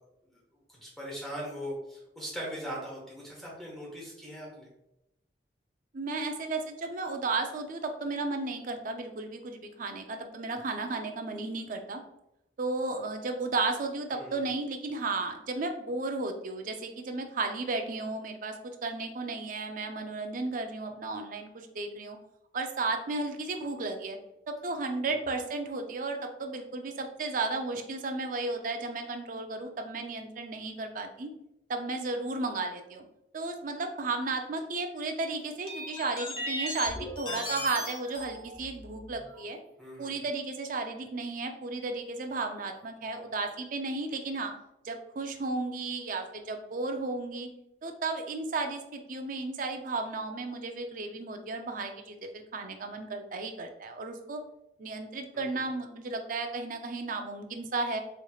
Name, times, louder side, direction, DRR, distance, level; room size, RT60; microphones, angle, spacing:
voice 1, 0.7-4.7 14.1-14.5 25.0-25.1 39.8-40.2 55.3-55.5, equal, ahead, -4 dB, 1.2 m, -40 dB
voice 2, 5.9-12.0 12.6-22.2 22.5-24.2 24.5-31.3 31.7-33.0 33.3-39.6 40.0-44.5 44.8-47.5 47.8-54.4 54.8-58.0, right 3 dB, 50° right, 5 dB, 0.5 m, -34 dB
sound 1, 35.7-39.4 40.2-40.3 42.3-42.4, left 1 dB, 30° left, 1.0 m, -38 dB
4.3 x 3.1 x 2.3 m, 0.84 s
head